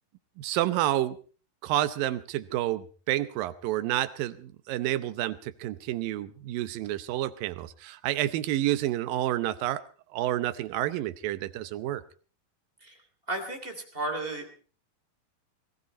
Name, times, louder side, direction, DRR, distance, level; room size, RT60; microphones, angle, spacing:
voice 1, 0.4-1.2 1.6-9.8 10.1-12.0, right 14 dB, 75° right, 14 dB, 2.5 m, -29 dB
voice 2, 13.3-14.5, right 2 dB, 15° right, 5 dB, 3.1 m, -34 dB
20.5 x 15.5 x 4.2 m, 0.39 s
omnidirectional pair, 4.2 m